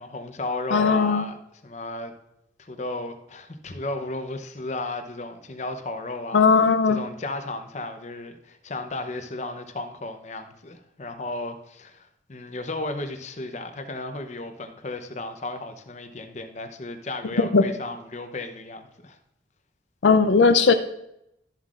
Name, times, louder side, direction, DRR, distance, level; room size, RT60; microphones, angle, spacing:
voice 1, 0.0-1.4 1.6-2.1 2.6-6.5 6.9-19.2, left 2 dB, 40° left, 6 dB, 0.7 m, -34 dB
voice 2, 0.7-1.2 6.3-7.0 17.5-17.7 20.0-20.7, left 4 dB, 85° left, 9 dB, 0.5 m, -17 dB
12.5 x 7.5 x 2.5 m, 0.80 s
head